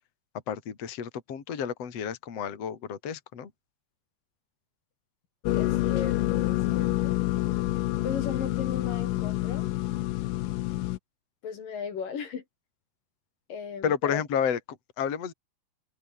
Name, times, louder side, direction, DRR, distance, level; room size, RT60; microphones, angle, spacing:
voice 1, 0.5-3.5 13.8-15.3, left 7 dB, 40° left, 3.5 m, -31 dB
sound 1, 5.4-11.0, left 17 dB, 85° left, 1.9 m, -27 dB
voice 2, 5.5-7.2 8.0-9.7 11.4-12.4 13.5-14.2, left 6 dB, 55° left, 4.2 m, -36 dB
omnidirectional pair, 4.9 m